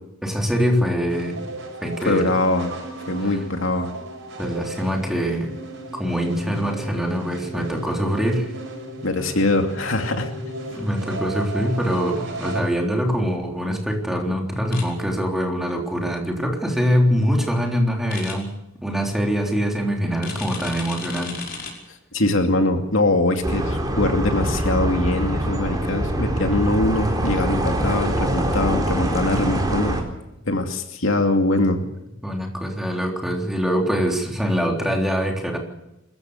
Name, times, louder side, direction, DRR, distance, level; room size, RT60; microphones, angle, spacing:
voice 1, 0.2-1.4 1.8-2.3 4.4-5.5 5.9-8.5 10.8-18.5 18.8-21.4 32.2-35.6, equal, ahead, 1 dB, 3.6 m, -23 dB
sound 1, 1.1-12.6, right 2 dB, 65° right, 6.8 m, -35 dB
voice 2, 2.0-2.7 3.1-3.9 9.0-10.3 22.1-30.0 30.4-31.8, left 2 dB, 70° left, 5 dB, 2.5 m, -22 dB
sound 2, 14.7-14.8 18.1-18.3 20.2-21.7, left 5 dB, 50° left, 5.7 m, -34 dB
sound 3, 23.4-30.0, right 1 dB, 20° right, 4.0 m, -24 dB
25.5 x 15.0 x 8.1 m, 0.91 s
head